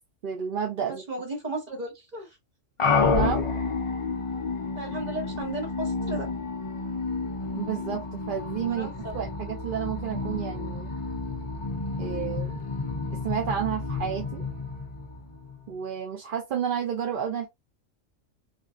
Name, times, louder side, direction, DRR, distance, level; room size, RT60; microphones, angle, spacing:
voice 1, 0.2-1.0 3.1-3.4 7.6-10.9 12.0-12.6 13.2-14.4 15.7-17.5, right 8 dB, 55° right, 0.6 m, -31 dB
voice 2, 0.9-2.4 4.8-6.3 8.7-9.2, right 2 dB, 35° right, 1.3 m, -35 dB
sound 1, 2.8-15.7, left 4 dB, 45° left, 0.4 m, -30 dB
4.3 x 2.4 x 2.3 m
omnidirectional pair, 1.3 m